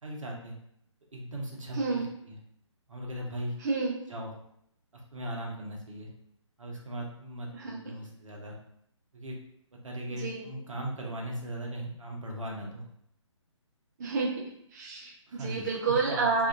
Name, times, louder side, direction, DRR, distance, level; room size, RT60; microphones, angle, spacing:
voice 1, 0.0-0.6 1.1-2.4 2.9-3.5 4.1-4.3 4.9-6.1 6.6-8.6 9.1-9.4 9.7-12.9 15.3-16.5, right 1 dB, 80° right, -1 dB, 0.8 m, -38 dB
voice 2, 1.8-2.1 3.6-4.0 7.5-7.8 10.2-10.4 14.0-14.5 14.7-16.5, right 4 dB, 35° right, -1 dB, 0.4 m, -29 dB
2.6 x 2.3 x 2.5 m, 0.72 s
figure-of-eight pair, 140°, 16 cm